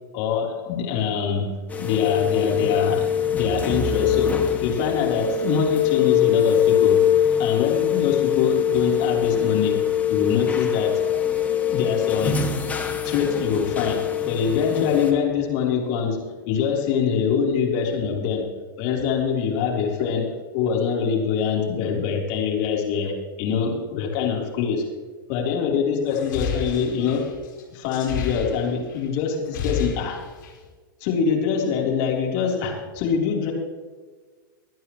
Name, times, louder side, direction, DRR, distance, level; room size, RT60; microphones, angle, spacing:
voice 1, 0.1-3.1 3.3-7.1 7.4-9.8 10.1-11.1 11.7-12.6 13.0-24.8 25.3-27.3 27.7-30.2 31.0-33.5, left 6 dB, 45° left, -1 dB, 3.8 m, -24 dB
sound 1, 1.7-15.1, left 9 dB, 15° left, 2.0 m, -22 dB
sound 2, 26.1-29.0 29.3-30.7, left 6 dB, 60° left, 4.9 m, -31 dB
24.0 x 9.5 x 3.2 m, 1.4 s
figure-of-eight pair, 100°, 11 cm